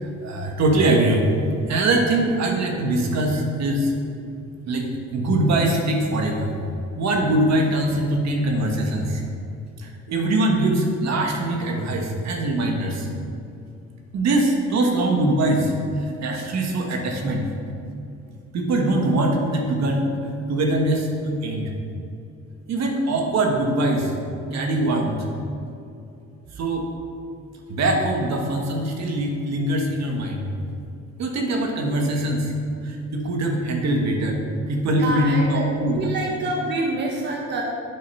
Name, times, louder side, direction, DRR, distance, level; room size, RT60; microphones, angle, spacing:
voice 1, 0.0-1.2 1.7-3.9 4.7-6.5 7.0-9.2 9.8-13.1 14.1-17.5 18.5-20.1 20.5-21.7 22.7-24.1 24.5-25.1 26.5-26.9 27.7-30.5 31.2-32.5 32.8-36.0, right 1 dB, 65° right, 1 dB, 1.6 m, -22 dB
voice 2, 34.8-35.7 36.0-37.6, right 2 dB, 35° right, -1 dB, 1.2 m, -27 dB
9.2 x 7.7 x 5.6 m, 2.6 s
cardioid pair, 170°, 30 cm